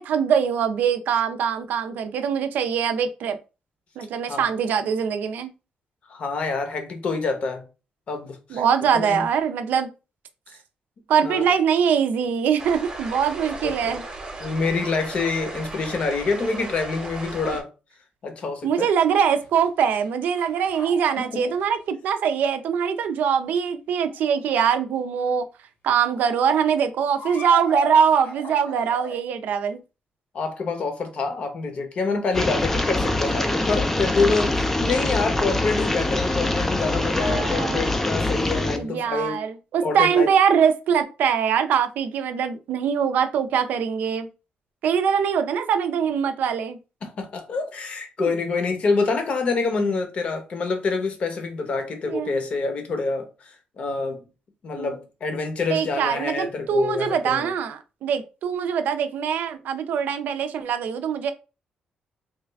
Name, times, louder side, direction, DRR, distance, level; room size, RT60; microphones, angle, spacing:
voice 1, 0.0-3.4 4.0-5.5 8.5-9.9 11.1-14.0 17.4-17.6 18.6-25.5 25.8-29.8 37.2-37.9 38.8-44.3 44.8-46.8 48.2-48.3 52.0-52.4 54.8-55.0 55.7-61.3, right 7 dB, 75° right, 0.4 m, -23 dB
voice 2, 6.1-7.6 8.1-8.6 8.9-9.3 11.2-11.4 13.6-14.0 14.4-17.7 18.2-18.9 21.2-21.4 30.3-39.4 39.8-40.3 47.0-54.2 54.6-57.5, left 4 dB, 45° left, 0.7 m, -26 dB
sound 1, 12.6-17.6, right 2 dB, 30° right, 0.8 m, -36 dB
sound 2, 19.4-21.8 24.1-24.4 26.0-26.6 27.1-29.2, left 3 dB, 75° left, 1.0 m, -37 dB
sound 3, 32.3-38.8, left 2 dB, 10° left, 0.3 m, -24 dB
3.1 x 2.3 x 3.3 m
wide cardioid pair, 170°, 3 cm